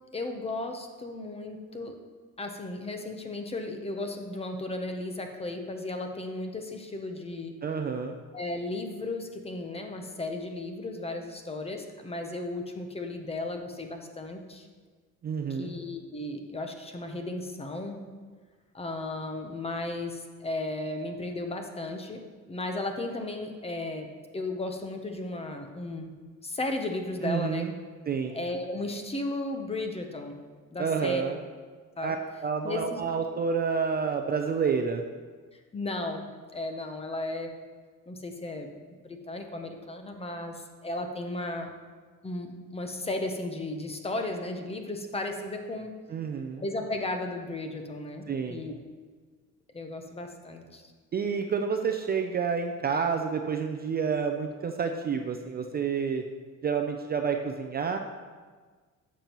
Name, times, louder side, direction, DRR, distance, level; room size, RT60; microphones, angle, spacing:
voice 1, 0.1-2.0 2.4-7.5 8.3-14.7 15.5-18.0 18.7-22.2 22.5-26.1 26.4-27.7 28.3-30.4 30.7-31.2 32.0-32.1 32.6-33.0 35.7-37.5 38.1-38.7 39.0-41.7 42.2-45.9 46.6-48.8 49.7-50.9, left 2 dB, 20° left, 5 dB, 0.7 m, -35 dB
voice 2, 7.6-8.1 15.2-15.7 27.2-27.7 28.1-28.3 30.8-31.4 32.0-32.2 32.4-35.0 46.1-46.6 48.3-48.6 51.1-56.2 56.6-58.0, right 6 dB, 30° right, 4 dB, 0.4 m, -29 dB
12.0 x 7.4 x 3.0 m, 1.5 s
cardioid pair, 145°, 33 cm